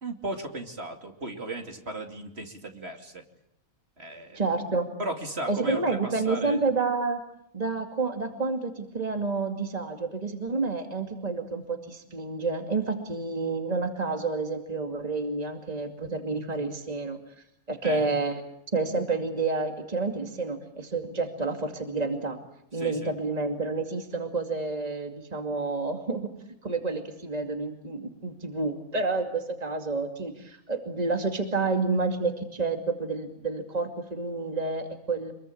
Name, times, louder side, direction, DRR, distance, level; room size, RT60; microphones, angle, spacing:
voice 1, 0.0-3.2 4.0-4.4 5.0-6.6 17.8-18.1 22.7-23.1, right 2 dB, 45° right, 4 dB, 3.0 m, -36 dB
voice 2, 4.3-4.9 5.5-7.2 7.5-17.2 17.7-18.4 18.7-22.4 22.7-26.3 26.6-35.3, right 3 dB, 30° right, 5 dB, 2.6 m, -29 dB
27.0 x 22.5 x 8.7 m, 0.73 s
omnidirectional pair, 1.5 m